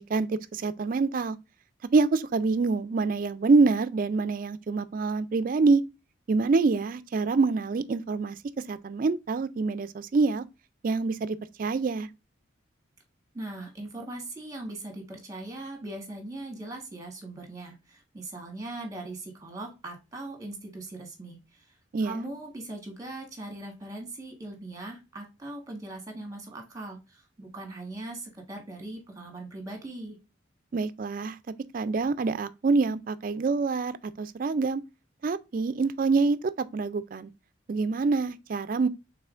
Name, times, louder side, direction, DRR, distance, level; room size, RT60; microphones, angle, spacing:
voice 1, 0.0-1.4 1.9-5.8 6.3-8.4 8.7-10.4 10.8-12.1 21.9-22.2 30.7-31.4 31.7-34.8 35.2-37.3 37.7-38.9, right 4 dB, 45° right, 0.3 m, -26 dB
voice 2, 13.3-21.4 22.0-30.2, right 2 dB, 15° right, 1.3 m, -40 dB
5.5 x 3.6 x 2.5 m
head